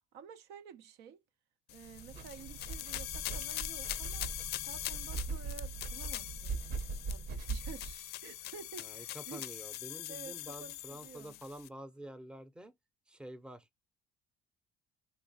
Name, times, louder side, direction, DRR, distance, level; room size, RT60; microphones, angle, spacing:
voice 1, 0.1-1.2 1.7-6.6 7.1-9.4 10.1-11.4, right 7 dB, 90° right, 0.5 m, -51 dB
sound 1, 1.7-11.7, left 15 dB, 75° left, 0.4 m, -42 dB
sound 2, 1.8-7.9, right 4 dB, 65° right, 0.9 m, -41 dB
voice 2, 8.8-12.7 13.1-13.7, right 1 dB, 5° right, 0.6 m, -48 dB
3.8 x 2.8 x 2.7 m
cardioid pair, 110°, 17 cm